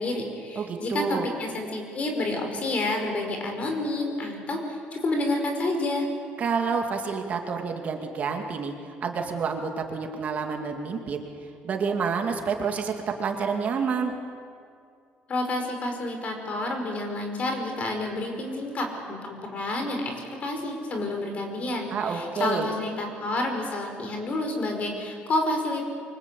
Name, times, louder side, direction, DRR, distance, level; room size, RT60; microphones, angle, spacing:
voice 1, 0.0-6.1 15.3-25.8, left 2 dB, 35° left, 3 dB, 5.4 m, -29 dB
voice 2, 0.6-1.3 6.4-8.8 9.0-11.2 11.6-14.1 21.9-22.7, right 5 dB, 40° right, 3 dB, 2.5 m, -28 dB
28.5 x 24.5 x 8.5 m, 2.3 s
cardioid pair, 160°, 4 cm